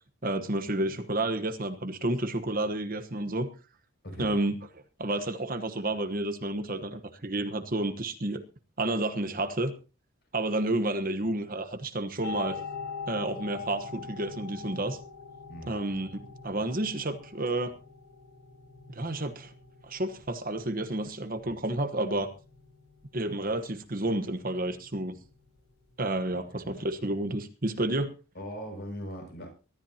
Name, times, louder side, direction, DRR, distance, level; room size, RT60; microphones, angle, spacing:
voice 1, 0.2-3.5 4.2-4.5 5.0-8.4 8.8-9.7 10.3-12.6 13.1-15.0 15.7-16.1 16.4-17.7 18.9-19.5 19.8-22.3 23.1-25.2 26.0-28.1, right 1 dB, 40° right, 9 dB, 1.2 m, -30 dB
sound 1, 12.2-27.0, left 4 dB, 75° left, 4.5 m, -44 dB
voice 2, 26.2-26.6 28.3-29.5, equal, 45° left, 3 dB, 6.3 m, -40 dB
23.0 x 13.5 x 2.9 m, 0.34 s
head